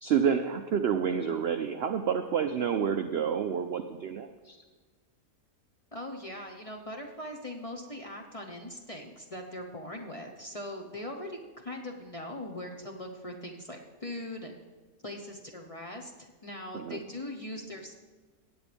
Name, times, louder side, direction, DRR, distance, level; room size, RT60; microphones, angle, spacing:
voice 1, 0.0-4.6 16.7-17.0, right 7 dB, 70° right, 7 dB, 0.6 m, -29 dB
voice 2, 5.9-14.6 15.0-17.9, left 1 dB, 30° left, 1 dB, 0.7 m, -41 dB
17.0 x 8.9 x 3.4 m, 1.4 s
omnidirectional pair, 1.7 m